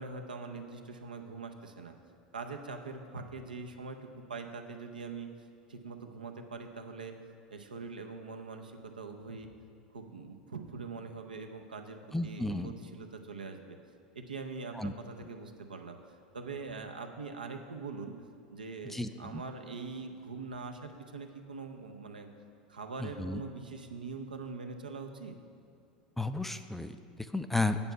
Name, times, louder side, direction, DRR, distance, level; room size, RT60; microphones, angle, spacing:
voice 1, 0.0-2.0 2.3-5.3 5.7-7.2 7.5-9.5 9.9-13.8 14.1-16.0 16.3-18.1 18.5-22.3 22.7-25.4, right 4 dB, 80° right, 4 dB, 0.6 m, -43 dB
voice 2, 12.1-12.7 14.7-14.9 18.8-19.4 23.0-23.4 26.2-27.8, left 2 dB, 5° left, 10 dB, 0.4 m, -33 dB
8.0 x 7.1 x 5.4 m, 2.4 s
figure-of-eight pair, 80°, 5 cm